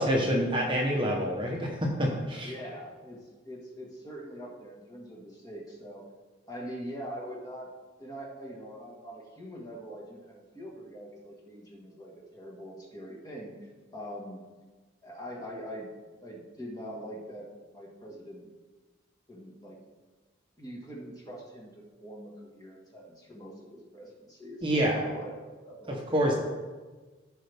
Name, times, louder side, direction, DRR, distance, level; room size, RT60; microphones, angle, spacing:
voice 1, 0.0-2.5 24.6-25.1 25.9-26.3, equal, 25° right, -1 dB, 1.0 m, -27 dB
voice 2, 2.4-6.0 6.5-7.7 8.0-13.6 13.9-14.4 15.0-15.9 16.2-18.5 19.3-19.8 20.6-26.1, equal, 20° left, -4 dB, 1.7 m, -43 dB
15.0 x 5.5 x 3.5 m, 1.3 s
head